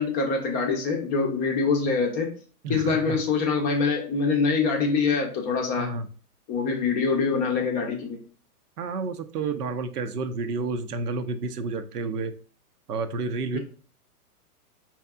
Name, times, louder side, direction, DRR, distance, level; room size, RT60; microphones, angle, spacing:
voice 1, 0.0-2.3 2.7-5.9 6.5-8.2 13.5-13.6, left 4 dB, 20° left, 1 dB, 0.5 m, -24 dB
voice 2, 2.6-3.2 5.8-6.1 8.8-12.3 12.9-13.6, right 3 dB, 80° right, 9 dB, 0.6 m, -30 dB
4.6 x 2.8 x 2.3 m, 0.40 s
hypercardioid pair, 120°, 46 cm